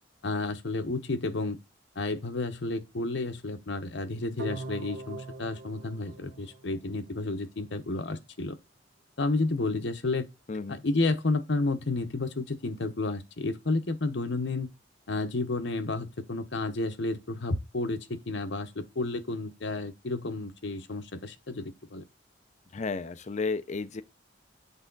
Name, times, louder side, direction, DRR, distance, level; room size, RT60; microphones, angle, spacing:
voice 1, 0.2-1.6 2.0-8.6 9.2-10.3 10.7-14.7 15.1-22.0, left 2 dB, 70° left, 0.9 m, -31 dB
sound 1, 4.4-7.4, right 2 dB, 65° right, 0.9 m, -42 dB
voice 2, 10.5-10.8 22.7-24.0, left 4 dB, 40° left, 0.5 m, -32 dB
8.3 x 3.5 x 3.9 m
head